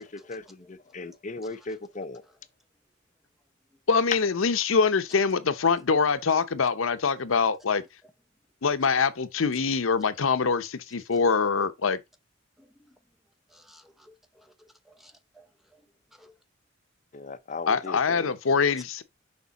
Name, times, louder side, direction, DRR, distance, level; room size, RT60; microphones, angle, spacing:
voice 1, 0.0-2.2 17.1-18.4, left 3 dB, 40° left, 0.6 m, -38 dB
voice 2, 3.9-7.8 8.6-12.0 17.7-19.0, left 5 dB, 80° left, 0.7 m, -24 dB
voice 3, 12.6-13.0 13.5-14.5 14.9-15.5 16.2-16.3, equal, ahead, 0.8 m, -57 dB
6.7 x 4.6 x 4.0 m
head